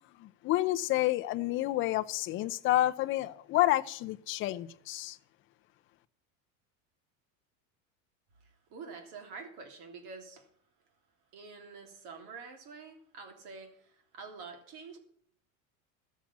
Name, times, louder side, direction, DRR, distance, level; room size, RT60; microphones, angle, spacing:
voice 1, 0.2-5.2, left 15 dB, 30° left, 10 dB, 0.6 m, -29 dB
voice 2, 8.7-10.5 11.3-15.0, right 4 dB, 50° right, 4 dB, 3.3 m, -47 dB
13.0 x 7.5 x 7.3 m, 0.63 s
cardioid pair, 165°, 39 cm